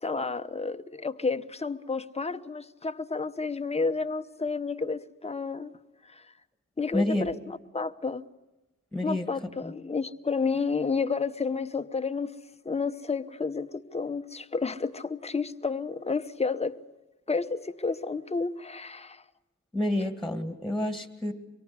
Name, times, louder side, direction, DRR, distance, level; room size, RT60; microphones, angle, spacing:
voice 1, 0.0-5.7 6.0-6.3 6.8-8.2 9.0-12.3 12.6-16.8 17.3-19.2, left 4 dB, 20° left, 0.9 m, -31 dB
voice 2, 6.9-7.3 8.9-9.3 9.6-9.7 19.7-21.3, left 1 dB, ahead, 2.0 m, -29 dB
25.5 x 23.0 x 9.6 m
wide cardioid pair, 150°, 30 cm